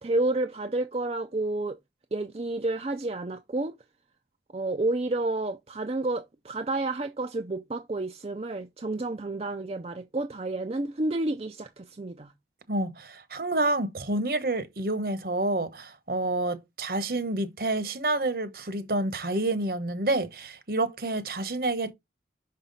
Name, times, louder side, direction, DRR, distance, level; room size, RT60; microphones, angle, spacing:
voice 1, 0.0-1.8 2.1-3.8 4.5-12.3, right 2 dB, 35° right, 0.5 m, -30 dB
voice 2, 12.7-21.9, right 2 dB, 55° right, 1.1 m, -28 dB
6.0 x 5.7 x 4.0 m
head